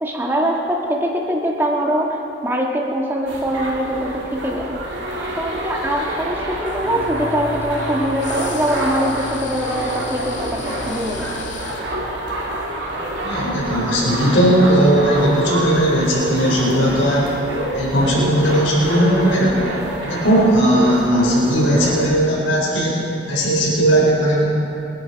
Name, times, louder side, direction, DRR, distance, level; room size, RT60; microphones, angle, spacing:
voice 1, 0.0-2.2 2.4-4.8 5.4-11.3, equal, 10° right, -1 dB, 1.6 m, -23 dB
sound 1, 3.3-22.1, right 1 dB, 70° right, 3.0 m, -27 dB
sound 2, 6.7-11.8, left 2 dB, 65° left, 2.0 m, -33 dB
voice 2, 13.2-17.3 17.7-19.6 20.0-23.0 23.3-24.4, right 1 dB, 90° left, -5 dB, 4.4 m, -17 dB
26.0 x 11.0 x 4.8 m, 2.9 s
head